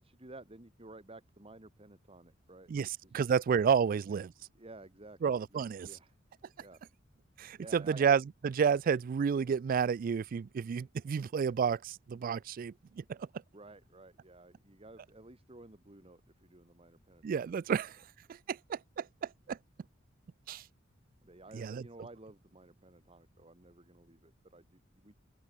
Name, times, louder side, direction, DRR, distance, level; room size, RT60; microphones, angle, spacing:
voice 1, 0.0-3.2 3.9-4.2 4.5-5.2 5.5-6.2 6.6-6.8 7.6-8.2 13.5-17.8 21.2-25.1, right 2 dB, 30° right, 2.2 m, -54 dB
voice 2, 2.7-4.3 5.2-5.9 7.4-13.3 17.2-18.0 18.3-19.6 20.5-20.6 21.5-21.8, right 6 dB, 45° right, 0.3 m, -31 dB
open air
head